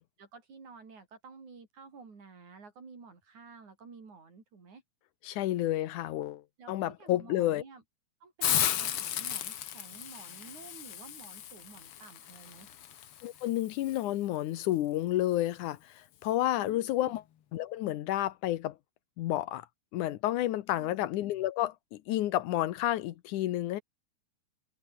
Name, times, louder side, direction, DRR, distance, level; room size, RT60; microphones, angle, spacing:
voice 1, 0.2-4.8 6.6-7.8 8.2-12.7 16.6-17.2 20.7-21.1, right 4 dB, 75° right, 6.3 m, -51 dB
voice 2, 5.2-7.6 13.2-17.2 17.5-18.8 19.2-19.7 19.9-23.8, left 14 dB, 85° left, 2.5 m, -30 dB
Hiss, 8.4-14.0, left 10 dB, 55° left, 2.0 m, -35 dB
omnidirectional pair, 3.4 m